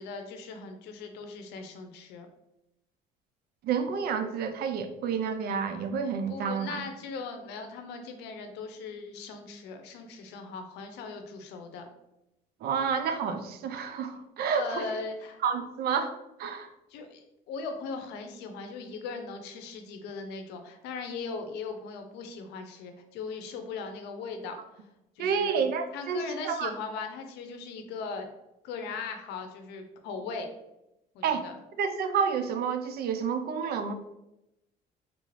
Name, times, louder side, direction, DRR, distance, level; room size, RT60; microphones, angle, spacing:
voice 1, 0.0-2.3 6.3-11.8 14.5-15.4 16.9-24.9 25.2-25.6 25.9-28.3 28.6-30.5 31.1-31.6, left 4 dB, 85° left, 6 dB, 0.6 m, -39 dB
voice 2, 3.6-6.8 12.6-14.8 15.4-16.1 16.4-16.7 25.2-26.2 26.4-26.7 31.2-31.4 31.8-33.9, right 6 dB, 65° right, 8 dB, 0.5 m, -29 dB
3.6 x 2.5 x 3.1 m, 0.89 s
cardioid pair, 110°, 17 cm